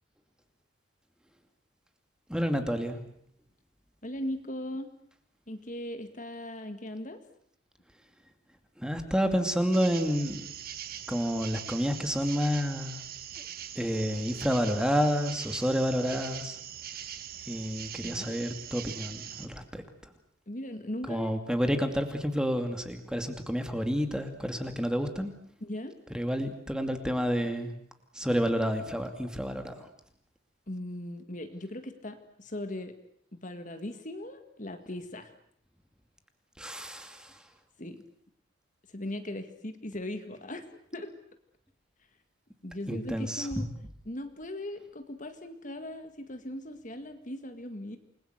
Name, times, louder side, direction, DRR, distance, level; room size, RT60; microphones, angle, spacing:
voice 1, 2.3-3.0 8.8-10.5 11.1-13.0 13.4-13.5 13.8-16.6 17.5-19.8 21.1-25.3 26.1-27.7 28.1-29.8 36.6-37.4 42.9-43.5, equal, 5° right, 6 dB, 2.4 m, -29 dB
voice 2, 4.0-4.9 5.5-7.2 18.0-18.4 20.5-21.3 25.6-26.0 30.7-33.0 33.3-35.3 37.8-38.0 38.9-41.1 42.6-43.7 44.1-48.0, left 1 dB, 35° left, 8 dB, 1.8 m, -38 dB
sound 1, 9.7-19.5, right 10 dB, 45° right, 1.6 m, -42 dB
28.5 x 21.5 x 8.1 m, 0.66 s
head